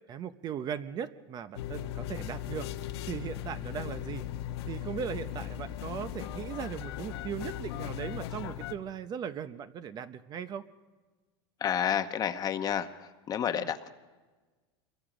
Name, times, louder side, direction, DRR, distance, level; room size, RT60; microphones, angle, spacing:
voice 1, 0.1-2.7 3.1-4.2 4.7-10.6 13.5-13.7, right 8 dB, 30° right, 12 dB, 0.7 m, -38 dB
sound 1, 1.6-8.7, left 11 dB, 80° left, 1.2 m, -38 dB
voice 2, 11.6-12.9 13.3-13.9, left 9 dB, 30° left, 9 dB, 1.0 m, -29 dB
27.0 x 22.5 x 5.0 m, 1.3 s
supercardioid pair, 135°, 13 cm